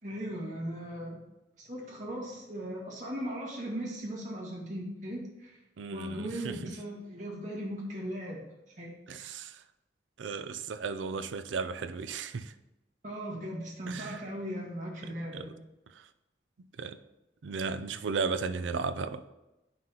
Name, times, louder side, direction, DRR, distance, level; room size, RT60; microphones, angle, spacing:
voice 1, 0.0-1.2 1.6-5.6 5.9-8.4 8.8-9.4 13.0-15.5, equal, 40° right, 1.8 m, -38 dB
voice 2, 5.8-6.6 9.1-9.6 10.2-12.5 13.9-14.2 15.3-15.4 16.8-17.0 17.4-19.3, right 5 dB, 90° right, 0.5 m, -35 dB
9.3 x 5.7 x 2.9 m
head